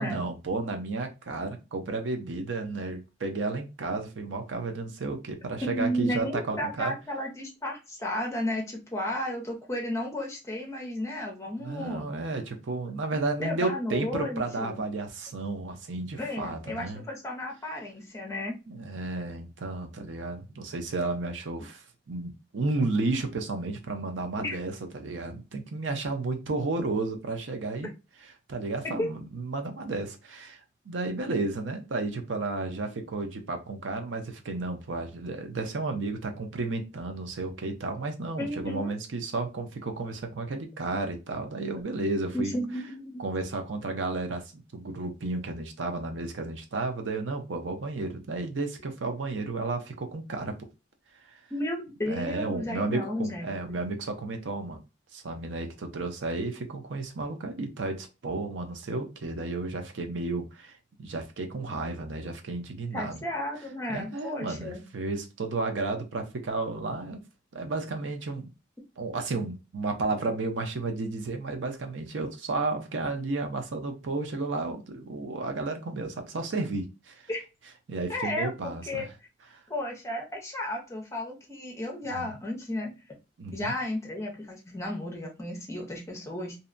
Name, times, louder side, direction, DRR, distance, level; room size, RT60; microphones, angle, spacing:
voice 1, 0.0-6.9 11.6-17.0 18.7-27.9 28.5-30.6 30.9-42.5 43.2-50.6 51.2-51.4 52.1-54.8 55.1-60.7 61.0-63.2 63.9-67.2 67.5-68.5 69.0-77.3 77.9-79.0 82.1-82.3 83.4-83.7, right 3 dB, 85° right, 0.6 m, -32 dB
voice 2, 5.6-12.1 13.4-14.8 16.2-18.6 24.4-24.6 29.0-29.1 38.4-38.9 42.3-43.2 51.5-53.8 62.9-64.8 77.3-77.4 78.1-79.0 79.7-82.9 83.5-86.6, left 1 dB, 15° left, 0.6 m, -33 dB
2.7 x 2.1 x 2.5 m
head